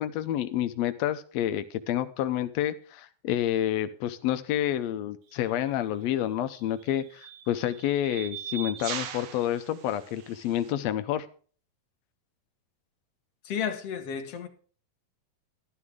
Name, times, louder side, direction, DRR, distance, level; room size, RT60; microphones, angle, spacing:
voice 1, 0.0-11.3, left 11 dB, 85° left, 1.5 m, -29 dB
sound 1, 5.3-5.5 6.5-10.7, right 9 dB, 65° right, 1.6 m, -40 dB
voice 2, 13.4-14.5, left 8 dB, 55° left, 2.1 m, -32 dB
12.5 x 11.5 x 3.7 m
omnidirectional pair, 3.9 m